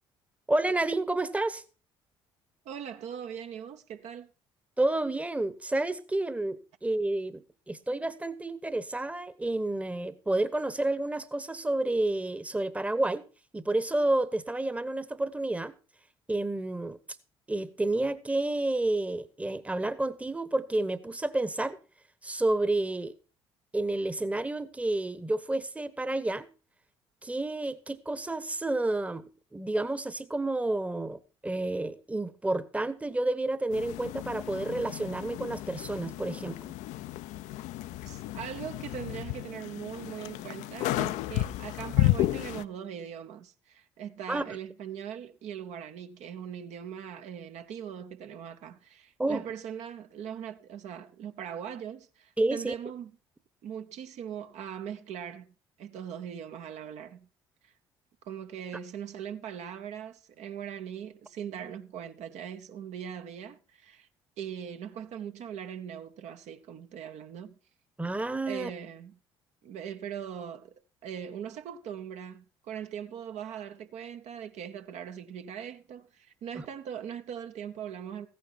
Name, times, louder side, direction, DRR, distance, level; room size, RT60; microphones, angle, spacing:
voice 1, 0.5-1.6 4.8-13.2 13.5-15.7 16.3-17.0 17.5-21.8 22.2-23.1 23.7-26.5 27.2-36.7 44.3-44.6 49.2-49.4 52.4-52.7 68.0-68.7 76.6-76.7, right 2 dB, 10° right, 1.0 m, -30 dB
voice 2, 2.6-4.3 38.1-53.1 53.6-57.3 57.6-57.7 58.2-64.1 64.4-67.6 68.5-69.2 69.6-70.7 71.0-78.3, right 8 dB, 55° right, 0.9 m, -40 dB
sound 1, 33.7-42.6, left 16 dB, 60° left, 0.6 m, -32 dB
15.0 x 9.5 x 4.4 m
figure-of-eight pair, 50°, 14 cm